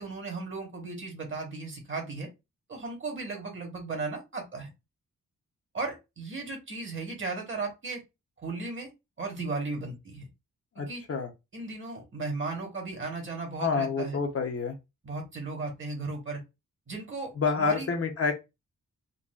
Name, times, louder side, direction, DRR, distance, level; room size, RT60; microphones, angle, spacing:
voice 1, 0.0-2.3 2.7-4.7 5.7-8.0 8.4-8.9 9.2-10.3 10.9-11.0 11.5-14.2 15.0-16.4 16.9-17.9, right 3 dB, 40° right, 1.2 m, -35 dB
voice 2, 10.8-11.3 13.6-14.7 17.4-18.3, left 5 dB, 45° left, 0.7 m, -28 dB
3.8 x 2.3 x 2.3 m
wide cardioid pair, 150°, 31 cm